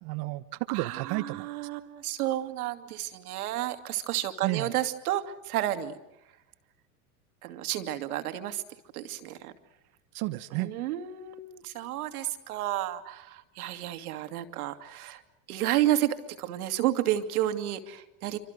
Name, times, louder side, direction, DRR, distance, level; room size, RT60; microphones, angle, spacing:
voice 1, 0.0-1.5 4.4-4.7 10.1-10.7, right 19 dB, 50° right, 10 dB, 1.1 m, -32 dB
voice 2, 0.7-5.9 7.4-8.6 8.9-9.5 10.5-15.2 15.5-18.4, right 13 dB, 75° right, 8 dB, 2.3 m, -31 dB
27.0 x 25.5 x 6.6 m, 0.90 s
hypercardioid pair, 95°, 45 cm